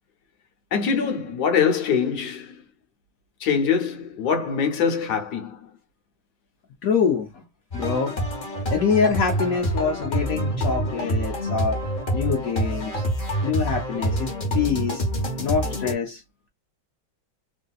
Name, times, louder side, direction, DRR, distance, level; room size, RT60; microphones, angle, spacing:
voice 1, 0.7-2.6 3.4-5.6, left 6 dB, 60° left, 1.2 m, -23 dB
voice 2, 6.8-7.4 7.7-8.2 8.7-11.8 12.1-13.0 13.4-15.1 15.4-16.2, left 6 dB, 80° left, 0.7 m, -25 dB
sound 1, 7.7-15.9, right 1 dB, 45° left, 0.6 m, -26 dB
3.3 x 2.6 x 2.3 m
omnidirectional pair, 2.2 m